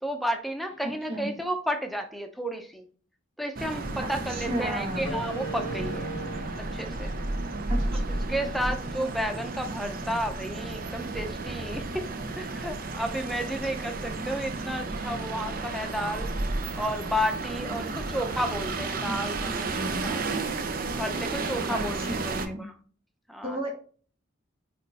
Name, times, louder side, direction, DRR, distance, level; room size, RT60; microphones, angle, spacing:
voice 1, 0.0-2.8 3.4-6.1 6.6-7.1 8.3-12.1 12.4-16.3 16.7-20.2 20.8-22.7 23.3-23.6, equal, ahead, 5 dB, 0.7 m, -32 dB
voice 2, 0.8-1.3 4.0-5.2 7.7-7.9 19.1-19.2 19.5-20.2 21.7-22.6 23.4-23.7, right 1 dB, 30° right, 0 dB, 2.0 m, -34 dB
sound 1, 3.6-22.5, right 3 dB, 45° right, 0.7 m, -32 dB
sound 2, 5.0-10.2, equal, 75° left, 1.0 m, -42 dB
8.6 x 3.2 x 4.1 m, 0.43 s
head